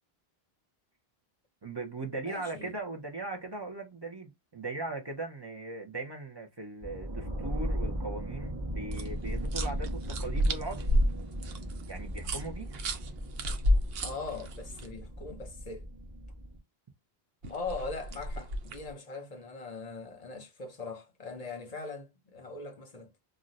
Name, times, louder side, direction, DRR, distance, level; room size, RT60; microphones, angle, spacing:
voice 1, 1.6-10.9 11.9-12.8, right 3 dB, 35° right, 0.5 m, -39 dB
voice 2, 2.2-2.7 14.0-15.8 17.5-23.1, left 3 dB, 45° left, 0.7 m, -41 dB
sound 1, 6.8-16.6, equal, 15° right, 0.9 m, -37 dB
sound 2, 8.9-14.9 17.4-18.9, equal, 70° right, 0.8 m, -31 dB
2.5 x 2.1 x 3.9 m
omnidirectional pair, 1.0 m